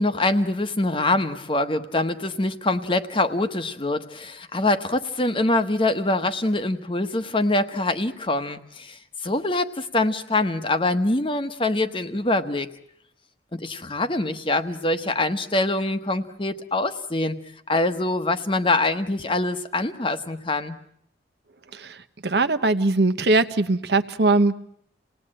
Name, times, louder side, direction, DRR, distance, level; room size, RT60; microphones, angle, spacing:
voice 1, 0.0-12.7 13.5-17.4 17.7-20.8, left 2 dB, 30° left, 9 dB, 1.2 m, -24 dB
voice 2, 21.7-24.6, right 2 dB, 65° right, 10 dB, 1.1 m, -21 dB
28.0 x 18.5 x 8.9 m, 0.71 s
head